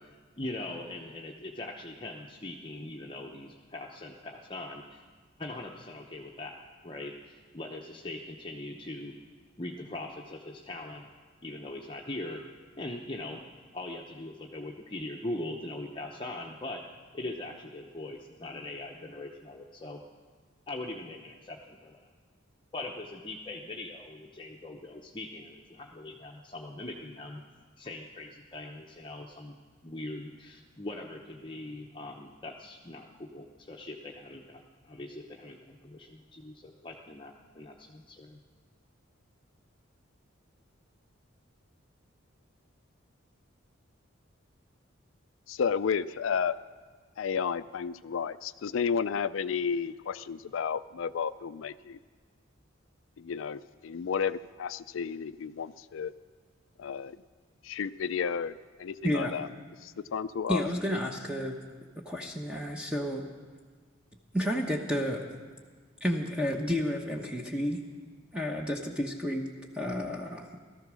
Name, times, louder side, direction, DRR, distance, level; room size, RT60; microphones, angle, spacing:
voice 1, 0.0-5.0 5.4-9.2 9.6-11.1 11.4-12.4 12.8-13.5 13.7-16.8 17.1-20.0 20.7-22.1 22.7-27.4 27.8-29.6 29.8-38.4, left 2 dB, 25° left, 0 dB, 0.8 m, -41 dB
voice 2, 45.5-46.6 47.2-52.0 53.2-56.1 56.8-57.2 57.6-59.5 59.8-60.6, left 6 dB, 75° left, 15 dB, 0.4 m, -32 dB
voice 3, 59.0-59.3 60.5-61.6 62.0-63.3 64.3-65.2 66.0-67.8 68.3-69.5 69.7-70.6, equal, 5° right, 1 dB, 0.9 m, -31 dB
16.5 x 13.5 x 6.2 m, 1.5 s
head